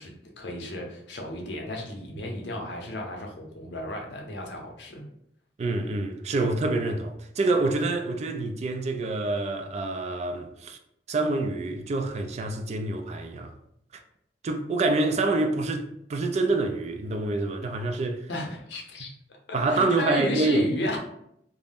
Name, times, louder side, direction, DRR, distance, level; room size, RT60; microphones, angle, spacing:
voice 1, 0.0-5.0 18.3-19.1 19.5-21.0, left 1 dB, 75° left, 0.6 m, -34 dB
voice 2, 5.6-10.8 11.1-13.5 13.9-14.0 14.4-18.2 19.5-20.9, right 2 dB, 40° right, 0.3 m, -27 dB
2.5 x 2.0 x 3.4 m
head